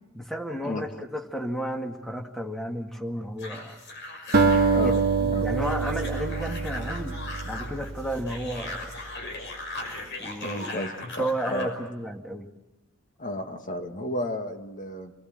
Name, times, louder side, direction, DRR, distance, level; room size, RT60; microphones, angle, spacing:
voice 1, 0.1-3.8 4.8-8.9 10.2-10.7 11.0-12.5, right 1 dB, ahead, 3 dB, 2.0 m, -33 dB
sound 1, 3.4-11.8, left 2 dB, 60° left, 6.0 m, -39 dB
Acoustic guitar, 4.3-8.8, right 4 dB, 50° right, 1.4 m, -25 dB
voice 2, 10.4-11.7 13.2-15.1, left 1 dB, 40° left, 5 dB, 2.1 m, -33 dB
29.0 x 20.5 x 8.0 m, 1.0 s
head